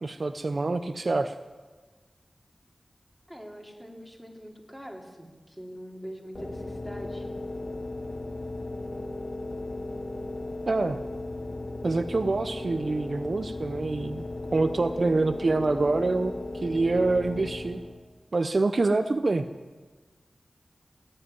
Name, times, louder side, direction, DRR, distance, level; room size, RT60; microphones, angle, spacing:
voice 1, 0.0-1.3 10.7-11.0 11.8-14.2 14.5-17.8 18.3-19.4, right 3 dB, 60° right, 9 dB, 0.7 m, -26 dB
voice 2, 3.3-7.3, equal, ahead, 0 dB, 3.2 m, -43 dB
sound 1, 6.3-18.0, left 2 dB, 45° left, 2.7 m, -36 dB
18.5 x 7.9 x 9.8 m, 1.3 s
wide cardioid pair, 55°, 0 cm